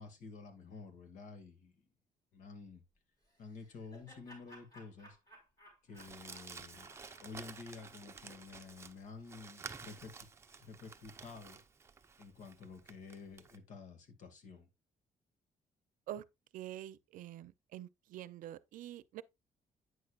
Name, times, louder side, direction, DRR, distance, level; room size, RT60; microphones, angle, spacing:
voice 1, 0.0-1.7 2.3-2.8 3.4-5.2 5.8-6.9 7.2-10.1 10.6-11.6 12.2-14.7, left 4 dB, 70° left, 2.1 m, -51 dB
Laughter, 3.3-8.4, equal, 25° left, 5.1 m, -60 dB
Crumpling crinkling, 6.0-13.6, right 5 dB, 20° right, 0.7 m, -52 dB
voice 2, 16.5-19.2, right 12 dB, 80° right, 0.6 m, -46 dB
9.2 x 6.6 x 2.4 m
cardioid pair, 150°, 14 cm